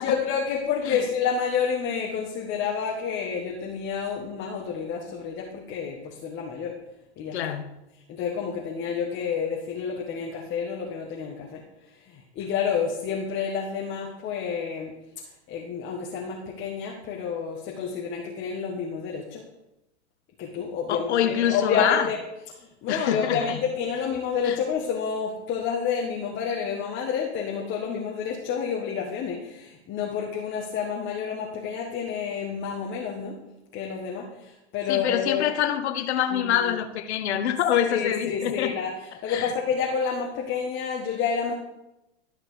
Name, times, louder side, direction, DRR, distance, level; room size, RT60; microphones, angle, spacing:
voice 1, 0.0-6.7 7.2-7.5 8.1-11.6 11.9-14.9 15.5-19.4 20.4-22.2 22.6-33.4 33.7-35.5 36.3-36.8 37.9-41.5, left 6 dB, 35° left, 1.7 m, -29 dB
voice 2, 7.3-7.7 20.9-22.1 22.9-23.6 24.4-24.6 34.9-38.7 39.3-39.5, left 10 dB, 70° left, 1.1 m, -25 dB
13.0 x 5.8 x 5.2 m
hypercardioid pair, 125°, 34 cm